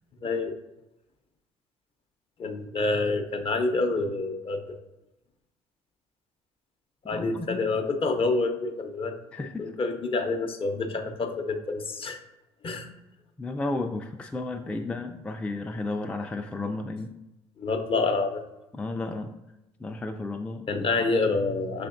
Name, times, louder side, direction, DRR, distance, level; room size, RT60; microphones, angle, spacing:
voice 1, 0.2-0.6 2.4-4.8 7.0-12.2 12.6-12.9 17.6-18.4 20.7-21.9, left 3 dB, 40° left, 6 dB, 0.6 m, -28 dB
voice 2, 7.1-7.6 9.3-9.7 13.4-17.1 18.7-19.3 19.8-20.9, left 2 dB, 10° left, 4 dB, 0.3 m, -33 dB
5.6 x 3.3 x 2.5 m, 0.92 s
hypercardioid pair, 60°, 14 cm